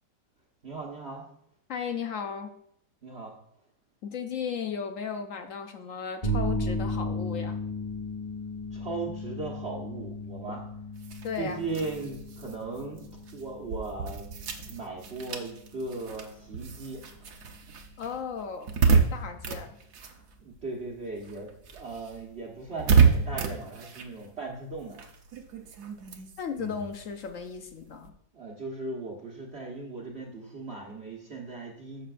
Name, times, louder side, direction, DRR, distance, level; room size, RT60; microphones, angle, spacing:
voice 1, 0.6-1.3 3.0-3.4 8.7-10.6 11.3-14.3 14.7-17.3 20.4-25.0 28.3-32.1, right 3 dB, 40° right, -4 dB, 1.3 m, -38 dB
voice 2, 1.7-2.5 4.0-7.6 11.2-11.6 18.0-18.7 19.1-19.8 26.4-28.1, left 6 dB, 65° left, 6 dB, 0.8 m, -35 dB
sound 1, 6.2-22.1, left 1 dB, 25° left, 2.0 m, -37 dB
sound 2, 11.0-20.9 21.2-28.1, right 5 dB, 65° right, 1.4 m, -30 dB
11.5 x 7.0 x 2.5 m, 0.72 s
omnidirectional pair, 1.9 m